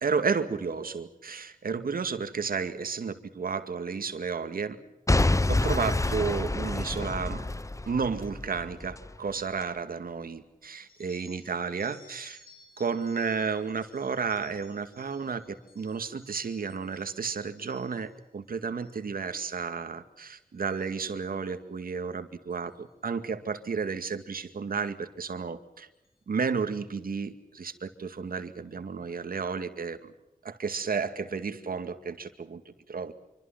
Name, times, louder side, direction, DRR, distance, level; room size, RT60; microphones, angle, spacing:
voice 1, 0.0-4.8 5.5-7.4 7.9-12.4 12.8-25.9 26.3-30.1 30.4-32.6 32.9-33.1, right 5 dB, 75° right, 9 dB, 2.2 m, -32 dB
Boom / Shatter / Crushing, 5.1-9.1 9.6-9.7, left 2 dB, 20° left, 0.9 m, -27 dB
sound 1, 10.9-18.2 18.7-19.1 19.4-19.8 20.2-21.5 22.5-22.7 23.7-23.9 24.8-24.9 25.3-25.4 25.9-26.2, left 3 dB, 90° left, 6.3 m, -58 dB
26.0 x 25.0 x 6.0 m, 0.93 s
cardioid pair, 50°, 15 cm